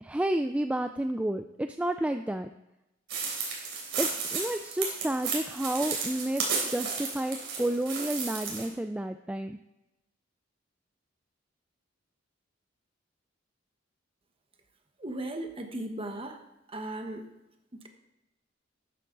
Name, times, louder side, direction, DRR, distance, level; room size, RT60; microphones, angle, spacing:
voice 1, 0.0-2.5 4.0-9.6, right 1 dB, 5° right, 7 dB, 0.3 m, -31 dB
sound 1, 3.1-8.7, right 5 dB, 65° right, 3.3 m, -33 dB
voice 2, 15.0-16.4 16.7-17.3 17.7-17.9, right 1 dB, 30° right, 4 dB, 1.3 m, -37 dB
13.0 x 9.3 x 3.9 m, 0.90 s
head